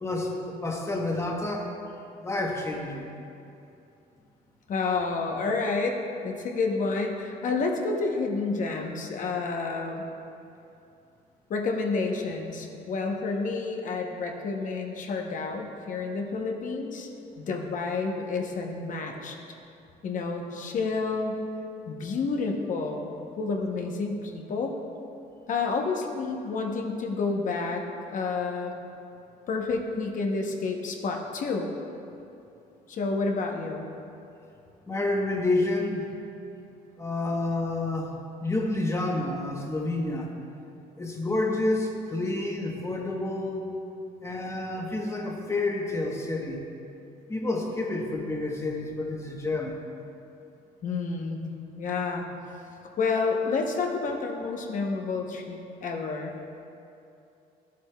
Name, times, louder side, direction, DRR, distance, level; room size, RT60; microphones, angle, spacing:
voice 1, 0.0-1.7 2.2-3.1 17.2-17.3 34.9-36.1 37.0-40.3 41.0-43.6 44.2-46.6 47.3-49.8, left 2 dB, 15° left, 0 dB, 1.0 m, -29 dB
voice 2, 4.7-10.1 11.5-17.1 17.4-19.4 20.0-21.4 21.9-24.7 25.5-27.8 28.1-28.8 29.5-31.7 32.9-33.9 50.8-51.4 51.8-52.3 53.0-56.4, left 4 dB, 50° left, 2 dB, 0.8 m, -29 dB
12.0 x 7.5 x 2.3 m, 2.7 s
cardioid pair, 110°, 17 cm